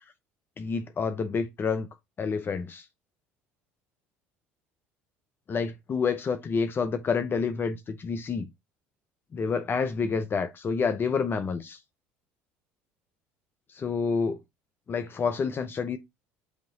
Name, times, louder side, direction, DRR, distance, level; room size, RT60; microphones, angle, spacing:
voice 1, 0.6-1.9 2.2-2.8 5.5-8.5 9.3-11.8 13.7-14.4 14.9-16.0, left 5 dB, 35° left, 0.8 m, -28 dB
8.1 x 3.0 x 3.8 m
supercardioid pair, 80°, 6 cm